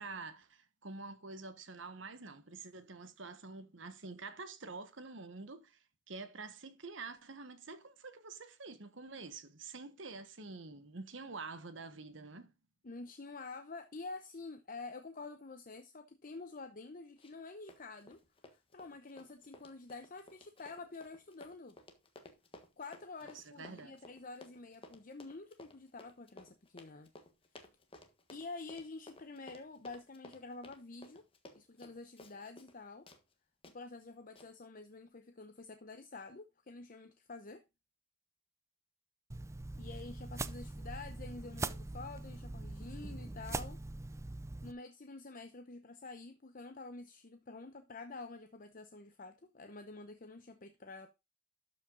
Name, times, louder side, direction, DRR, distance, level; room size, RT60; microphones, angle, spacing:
voice 1, 0.0-12.5 23.2-24.0, right 3 dB, 65° right, 1.2 m, -47 dB
voice 2, 12.8-18.2 18.5-21.7 22.8-27.1 28.3-31.2 31.5-33.1 33.7-37.6 39.8-43.8 44.6-51.1, left 3 dB, 45° left, 0.8 m, -48 dB
Run, 17.2-17.4 17.7-32.8 33.1-33.2 33.6-33.8 34.4-34.5, left 2 dB, 30° left, 1.4 m, -56 dB
sound 1, 39.3-44.7, right 2 dB, 15° right, 0.4 m, -42 dB
12.5 x 5.4 x 3.9 m
head